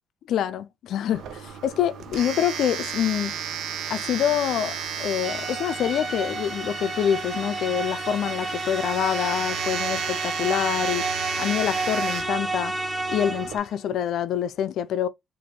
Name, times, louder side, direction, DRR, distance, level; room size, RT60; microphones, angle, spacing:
voice 1, 0.3-3.3 3.9-11.1 11.4-12.8 13.1-15.1, left 10 dB, 75° left, 0.4 m, -26 dB
Domestic sounds home sounds, 1.1-13.6, right 8 dB, 80° right, 0.7 m, -34 dB
sound 1, 5.2-13.7, right 2 dB, 5° right, 2.1 m, -31 dB
5.0 x 2.6 x 2.9 m
cardioid pair, 90°, 0 cm